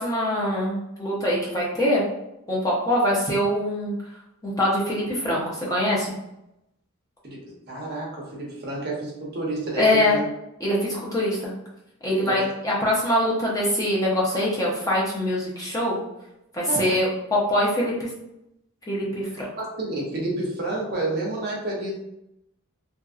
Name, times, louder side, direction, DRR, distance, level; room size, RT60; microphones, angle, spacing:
voice 1, 0.0-2.0 2.5-3.9 4.4-6.1 9.8-10.2 10.6-11.5 12.0-16.0 16.5-18.1 18.9-19.5, left 1 dB, 15° left, -5 dB, 0.6 m, -23 dB
voice 2, 7.2-10.2 12.2-12.4 16.7-17.1 19.3-21.9, right 2 dB, 45° right, -3 dB, 0.8 m, -30 dB
2.8 x 2.6 x 2.4 m, 0.85 s
head